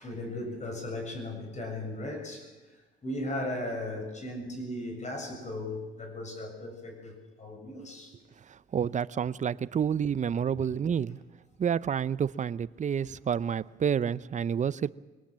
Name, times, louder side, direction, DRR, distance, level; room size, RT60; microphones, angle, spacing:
voice 1, 0.0-8.1 10.5-10.6, left 1 dB, 35° left, 4 dB, 7.0 m, -37 dB
voice 2, 8.5-11.2 11.6-14.9, right 7 dB, 40° right, 17 dB, 0.6 m, -29 dB
22.5 x 19.5 x 7.4 m, 1.2 s
cardioid pair, 90°, 20 cm